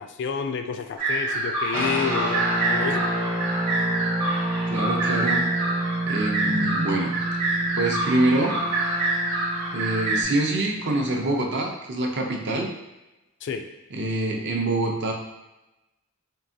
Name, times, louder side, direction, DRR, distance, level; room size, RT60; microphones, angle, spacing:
voice 1, 0.0-2.4 2.7-3.0 13.4-13.7, left 6 dB, 50° left, 6 dB, 0.3 m, -29 dB
sound 1, 1.0-10.2, right 2 dB, 85° right, 1.1 m, -27 dB
sound 2, 1.7-11.4, right 1 dB, 35° right, 1.0 m, -29 dB
voice 2, 4.7-5.4 6.1-7.2 7.8-8.6 9.7-12.7 13.9-15.1, right 2 dB, 50° right, 1 dB, 0.6 m, -25 dB
4.5 x 2.8 x 2.6 m, 0.99 s
head